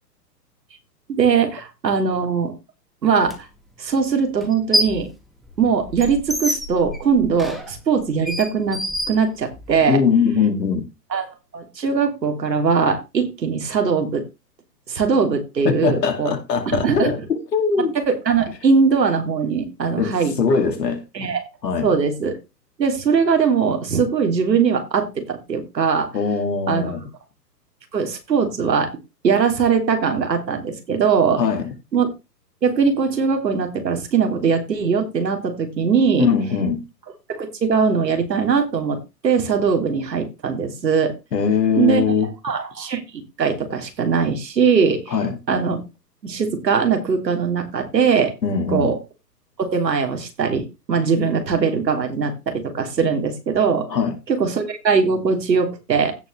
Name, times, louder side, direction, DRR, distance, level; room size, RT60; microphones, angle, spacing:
voice 1, 1.1-2.5 3.0-3.3 3.8-5.1 5.6-8.8 9.1-10.0 11.1-14.2 14.9-16.3 16.6-17.1 18.1-20.3 21.1-21.4 21.8-22.4 22.8-26.1 26.7-27.0 27.9-28.9 29.2-31.4 31.9-32.1 32.6-36.3 37.3-41.1 41.8-42.0 42.4-45.1 45.5-45.8 46.2-48.3 48.7-49.0 49.6-53.9 54.3-56.2, right 5 dB, 80° right, 3.1 m, -20 dB
sound 1, 3.3-3.4 4.4-5.1 5.4-9.8, equal, ahead, 0.7 m, -27 dB
voice 2, 9.9-10.8 15.6-17.9 20.0-21.0 21.6-21.9 26.1-27.0 31.4-31.7 36.2-36.8 41.3-42.3 45.1-45.4 48.4-49.0 53.9-54.1, left 6 dB, 75° left, 2.7 m, -21 dB
16.0 x 5.7 x 3.3 m
hypercardioid pair, 130°, 50 cm